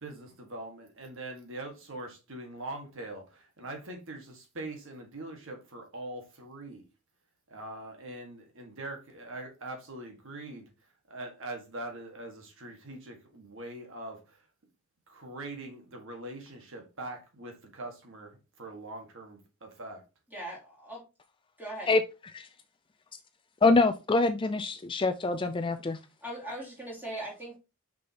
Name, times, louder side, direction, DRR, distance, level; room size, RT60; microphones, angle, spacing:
voice 1, 0.0-6.8 7.5-10.7 11.1-14.5 15.1-20.0, right 2 dB, 60° right, 1.7 m, -42 dB
voice 2, 20.3-21.0 21.6-21.9 26.2-27.6, right 1 dB, 10° right, 2.9 m, -39 dB
voice 3, 23.6-26.0, left 3 dB, 25° left, 0.4 m, -25 dB
6.2 x 5.5 x 2.9 m
head